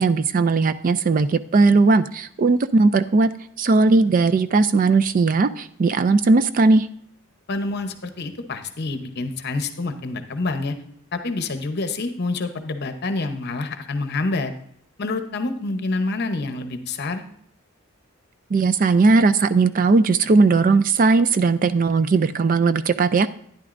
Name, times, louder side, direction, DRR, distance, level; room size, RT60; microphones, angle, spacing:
voice 1, 0.0-3.3 3.6-6.9 18.5-23.3, right 3 dB, 40° right, 12 dB, 0.3 m, -18 dB
voice 2, 7.5-10.7 11.1-14.5 15.0-17.2, left 3 dB, 50° left, 8 dB, 0.9 m, -27 dB
12.0 x 10.0 x 2.5 m, 0.66 s
head